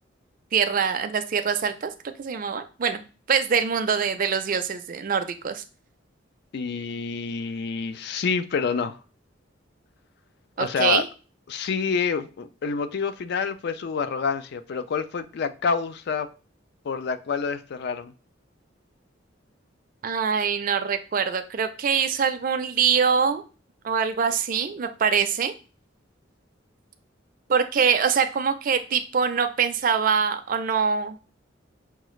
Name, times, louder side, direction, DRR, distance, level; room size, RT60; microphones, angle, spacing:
voice 1, 0.5-1.9 2.2-3.0 3.3-5.6 10.6-11.1 20.0-23.4 23.8-25.5 27.5-31.2, right 6 dB, 45° right, 0.4 m, -24 dB
voice 2, 6.5-9.0 10.6-11.1 11.5-16.3 16.8-18.1, left 5 dB, 55° left, 0.3 m, -27 dB
5.7 x 2.3 x 3.1 m
head